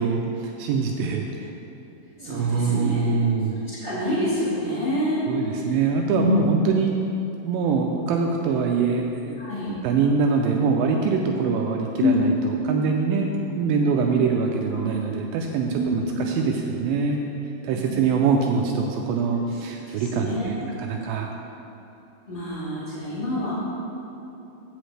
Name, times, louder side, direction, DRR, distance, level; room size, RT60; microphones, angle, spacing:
voice 1, 0.0-1.5 2.2-3.6 5.3-7.0 7.4-9.4 9.8-17.2 17.6-21.3, right 5 dB, 90° right, 1 dB, 2.0 m, -24 dB
voice 2, 2.2-3.1 3.6-5.2 6.1-6.4 9.4-9.7 12.0-12.2 15.7-16.0 17.7-18.0 19.9-20.6 22.3-23.5, left 2 dB, 50° left, -12 dB, 0.7 m, -27 dB
15.0 x 5.1 x 3.2 m, 2.9 s
omnidirectional pair, 4.7 m